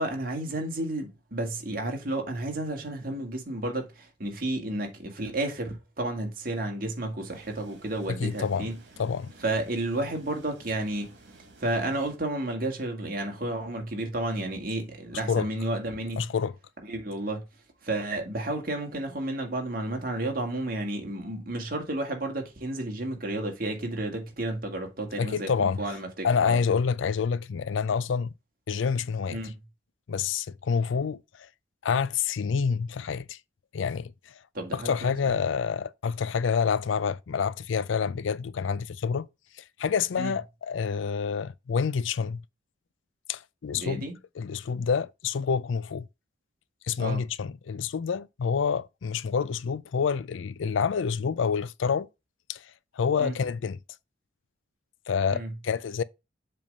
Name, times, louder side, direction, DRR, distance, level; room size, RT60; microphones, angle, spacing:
voice 1, 0.0-8.8 9.4-11.1 11.6-16.2 16.9-17.4 17.8-26.6 29.3-29.5 34.5-35.4 40.2-40.3 43.7-44.1 47.0-47.2 53.2-53.3 55.3-55.5, right 1 dB, 45° right, 1.9 m, -32 dB
sound 1, 7.2-12.2, right 2 dB, 60° right, 2.4 m, -53 dB
voice 2, 8.2-8.7 9.0-9.3 15.3-15.5 16.2-16.5 25.2-25.8 26.2-28.3 28.7-29.4 30.1-31.5 31.8-33.4 33.7-34.3 34.7-39.3 39.6-42.4 43.3-44.1 44.4-46.1 46.9-52.1 52.5-52.7 53.0-53.8 55.1-56.0, left 6 dB, 80° left, 0.4 m, -28 dB
7.5 x 3.6 x 5.3 m
head